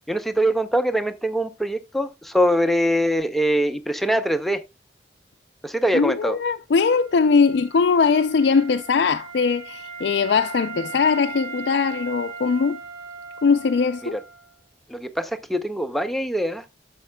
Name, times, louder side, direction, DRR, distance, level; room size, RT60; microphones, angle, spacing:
voice 1, 0.1-4.6 5.6-6.4 14.1-14.2 14.9-16.6, equal, ahead, 0.6 m, -23 dB
voice 2, 5.9-12.8 13.4-14.2, left 5 dB, 65° left, 0.4 m, -20 dB
Wind instrument woodwind instrument, 6.7-14.5, right 5 dB, 75° right, 2.3 m, -38 dB
11.0 x 7.3 x 2.2 m
head